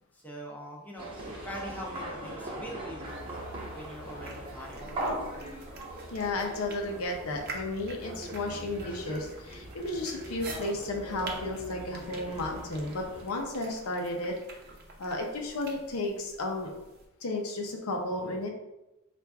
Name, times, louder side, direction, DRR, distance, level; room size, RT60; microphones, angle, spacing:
voice 1, 0.1-4.9, equal, 10° left, -3 dB, 0.7 m, -43 dB
sound 1, 1.0-13.2, right 1 dB, 25° right, 1.0 m, -40 dB
sound 2, 3.1-17.1, right 3 dB, 50° right, 0.7 m, -48 dB
voice 2, 6.1-14.4 15.0-16.7 17.2-18.5, left 2 dB, 85° left, 2 dB, 0.7 m, -33 dB
4.6 x 2.5 x 3.4 m, 0.96 s
head